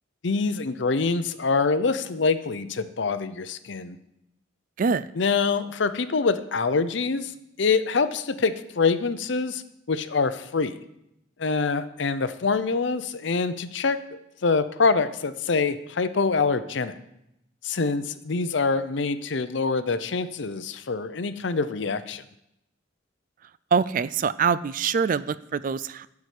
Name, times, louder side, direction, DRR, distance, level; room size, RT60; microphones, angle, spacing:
voice 1, 0.2-4.0 5.1-7.3 7.6-9.6 9.9-10.8 11.4-14.0 14.4-16.9 17.6-22.2, left 4 dB, 65° left, 11 dB, 0.7 m, -25 dB
voice 2, 23.7-26.1, right 6 dB, 45° right, 16 dB, 0.3 m, -24 dB
12.5 x 4.8 x 8.2 m, 0.83 s
head